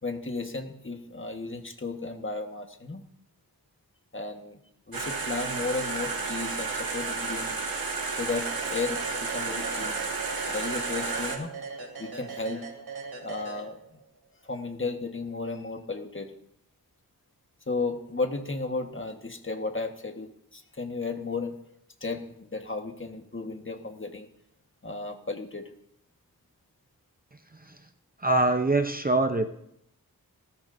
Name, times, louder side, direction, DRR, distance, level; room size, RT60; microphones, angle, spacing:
voice 1, 0.0-3.0 4.1-4.5 4.9-7.5 8.2-10.0 10.5-11.5 12.0-12.6 13.2-13.8 14.4-16.3 17.7-21.5 22.0-24.3 24.8-25.6, left 3 dB, 35° left, 5 dB, 1.5 m, -34 dB
sound 1, 4.9-11.4, right 4 dB, 70° right, 2.1 m, -32 dB
sound 2, 8.3-14.1, right 4 dB, 90° right, 2.7 m, -40 dB
voice 2, 28.2-29.5, right 2 dB, 25° right, 7 dB, 0.7 m, -24 dB
19.0 x 13.5 x 2.7 m, 0.75 s
wide cardioid pair, 85°, 37 cm